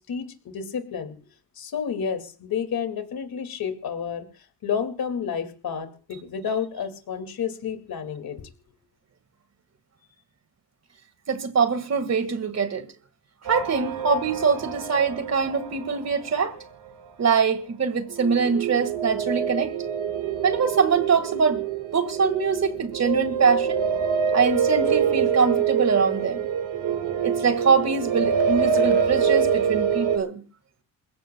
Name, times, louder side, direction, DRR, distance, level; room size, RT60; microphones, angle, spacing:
voice 1, 0.1-1.1 1.6-4.3 4.6-8.5, left 7 dB, 60° left, 2.4 m, -30 dB
voice 2, 11.3-12.9 13.5-16.6 17.2-19.8 20.4-21.6 21.9-23.9 24.3-26.5 27.2-30.4, right 5 dB, 40° right, 1.9 m, -23 dB
sound 1, 13.4-16.9 18.1-30.2, right 7 dB, 85° right, 2.1 m, -25 dB
28.0 x 16.0 x 2.3 m
cardioid pair, 115°, 40 cm